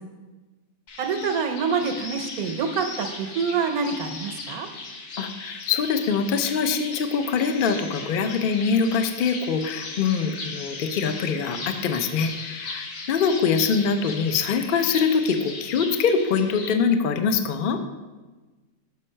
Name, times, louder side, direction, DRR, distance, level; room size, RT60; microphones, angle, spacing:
sound 1, 0.9-16.7, left 3 dB, 90° left, 1.5 m, -38 dB
voice 1, 1.0-4.7, right 5 dB, 75° right, 6 dB, 1.1 m, -26 dB
voice 2, 5.2-17.8, left 5 dB, 70° left, 7 dB, 0.5 m, -24 dB
6.4 x 5.3 x 5.5 m, 1.2 s
omnidirectional pair, 1.6 m